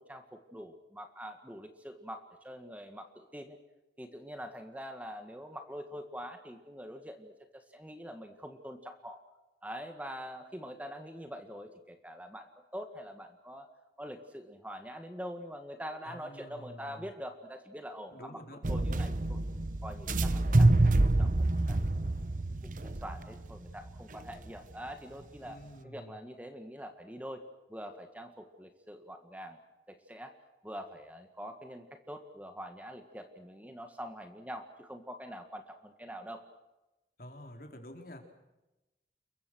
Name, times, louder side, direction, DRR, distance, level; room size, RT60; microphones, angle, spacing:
voice 1, 0.0-3.6 4.0-9.2 9.6-13.7 14.0-18.4 18.7-19.4 19.8-22.1 22.5-25.6 25.8-27.4 27.7-29.6 29.9-30.3 30.6-36.4, equal, 10° right, 6 dB, 1.8 m, -45 dB
voice 2, 16.0-17.1 18.1-18.6 25.4-26.2 37.2-38.2, equal, 55° left, 4 dB, 4.3 m, -48 dB
sound 1, 18.6-24.7, right 2 dB, 45° right, 1.0 m, -27 dB
29.5 x 23.0 x 6.4 m, 1.0 s
head